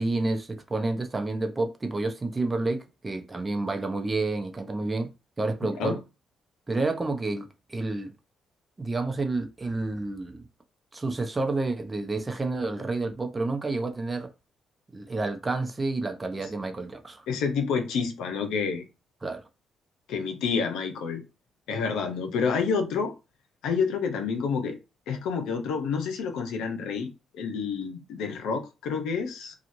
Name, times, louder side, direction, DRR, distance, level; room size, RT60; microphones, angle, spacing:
voice 1, 0.0-5.1 5.4-6.0 6.7-8.1 8.8-10.5 10.9-14.3 14.9-17.2 19.2-19.4, right 2 dB, 25° right, 0.7 m, -29 dB
voice 2, 17.3-18.8 20.1-21.2 21.7-23.1 23.6-24.8 25.1-29.5, left 5 dB, 85° left, 0.7 m, -28 dB
2.9 x 2.4 x 2.6 m
cardioid pair, 90°, 0 cm